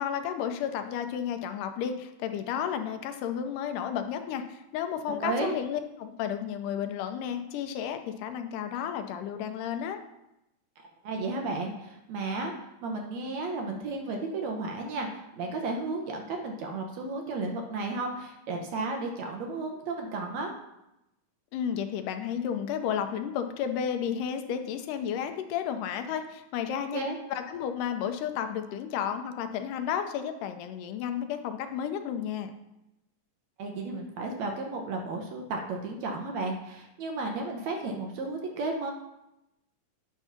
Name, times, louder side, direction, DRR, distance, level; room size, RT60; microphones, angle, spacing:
voice 1, 0.0-10.0 21.5-27.0 27.3-32.5, left 8 dB, 85° left, 7 dB, 2.3 m, -32 dB
voice 2, 5.1-5.6 10.8-12.5 12.8-20.5 26.9-27.2 33.6-38.9, right 3 dB, 70° right, 2 dB, 2.0 m, -33 dB
9.0 x 3.6 x 5.7 m, 0.88 s
omnidirectional pair, 3.7 m